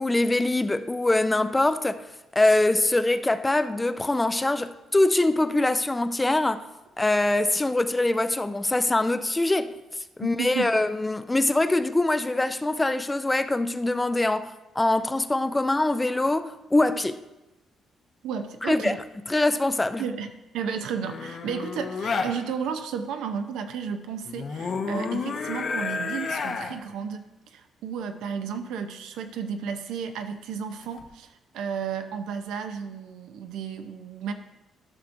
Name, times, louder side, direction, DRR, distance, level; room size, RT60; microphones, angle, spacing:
voice 1, 0.0-2.0 2.3-6.6 7.0-9.8 10.2-17.2 18.6-19.0 19.3-20.0, left 2 dB, 15° left, 0.4 m, -23 dB
voice 2, 10.2-10.7 18.2-19.0 20.0-27.2 27.5-31.3 31.5-34.3, right 7 dB, 85° right, 0.6 m, -33 dB
sound 1, 21.0-22.3 24.3-26.8 30.8-31.1, left 4 dB, 50° left, 0.7 m, -30 dB
12.5 x 5.9 x 2.6 m
cardioid pair, 90°, 0 cm